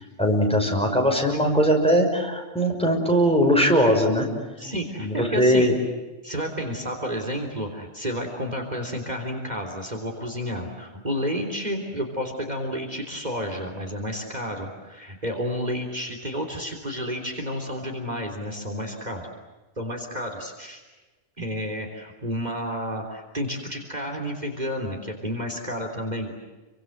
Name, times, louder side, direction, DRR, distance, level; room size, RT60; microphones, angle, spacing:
voice 1, 0.2-4.3 4.6-4.7 5.0-5.7, equal, 5° left, 1 dB, 6.0 m, -20 dB
voice 2, 4.6-5.7 6.2-19.3 19.8-20.8 21.4-26.3, equal, 35° right, 2 dB, 3.7 m, -31 dB
30.0 x 24.5 x 7.8 m, 1.2 s
omnidirectional pair, 1.2 m